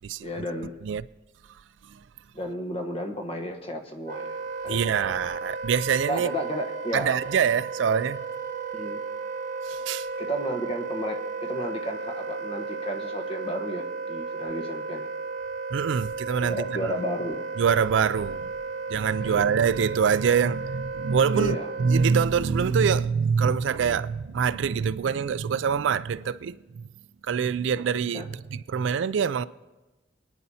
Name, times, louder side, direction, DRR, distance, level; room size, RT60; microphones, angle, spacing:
voice 1, 0.2-0.7 2.3-4.4 4.6-4.9 6.1-7.1 8.7-9.0 10.2-15.1 16.4-17.4 19.2-19.4 21.3-21.7 28.1-28.3, equal, 30° left, 1.1 m, -32 dB
Wind instrument woodwind instrument, 4.0-22.3, right 4 dB, 40° right, 0.7 m, -34 dB
voice 2, 4.7-6.3 6.9-8.2 9.6-10.1 15.7-16.9 17.6-18.5 18.9-26.8 27.2-29.4, right 6 dB, 75° right, 0.4 m, -25 dB
25.0 x 9.8 x 2.8 m
head